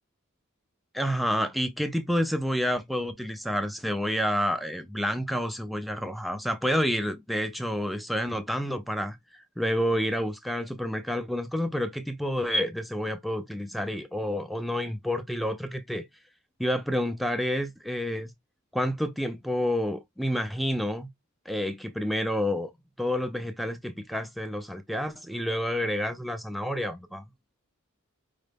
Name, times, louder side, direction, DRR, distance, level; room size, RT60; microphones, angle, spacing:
voice 1, 0.9-16.0 16.6-18.3 18.7-21.1 21.5-22.7 23.0-27.2, equal, ahead, 0.3 m, -29 dB
4.9 x 2.1 x 3.3 m
head